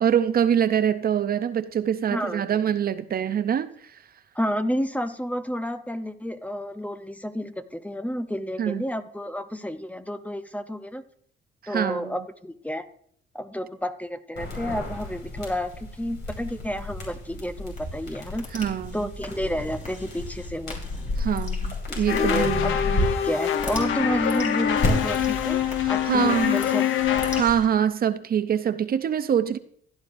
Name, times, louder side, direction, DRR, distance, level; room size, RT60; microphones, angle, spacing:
voice 1, 0.0-3.7 8.6-8.8 11.6-12.2 18.5-19.1 21.2-23.1 25.8-26.6 27.3-29.6, right 9 dB, 50° right, 0.6 m, -24 dB
voice 2, 2.1-2.7 4.3-11.0 11.7-12.9 13.3-18.5 18.9-20.8 21.9-25.6 25.9-26.9, equal, 5° left, 0.6 m, -30 dB
sound 1, 14.4-23.0 24.8-24.9, left 3 dB, 65° left, 5.0 m, -32 dB
sound 2, 17.7-21.8 22.2-22.3 22.8-22.9 23.4-26.7 27.0-27.7, left 2 dB, 40° left, 3.5 m, -38 dB
sound 3, 22.1-27.4, left 9 dB, 85° left, 0.8 m, -24 dB
16.0 x 10.5 x 2.6 m
cardioid pair, 90°, 20 cm